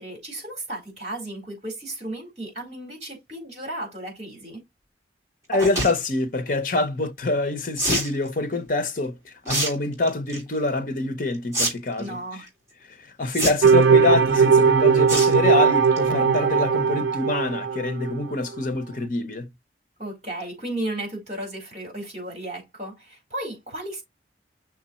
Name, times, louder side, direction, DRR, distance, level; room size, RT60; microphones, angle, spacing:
voice 1, 0.0-4.6 12.0-12.5 20.0-24.0, right 1 dB, 40° right, 4.1 m, -34 dB
voice 2, 5.5-12.2 12.9-19.5, left 2 dB, 50° left, 0.8 m, -25 dB
sound 1, 5.5-5.9 7.8-8.1 9.5-9.7 10.1-10.4 11.5-11.7 12.0-12.1 13.3-13.8 15.1-15.3 15.7-16.0 16.4-16.5 16.6-16.7, right 1 dB, 15° right, 3.0 m, -25 dB
sound 2, 13.6-18.2, right 5 dB, 85° right, 0.5 m, -19 dB
6.2 x 3.6 x 4.2 m
head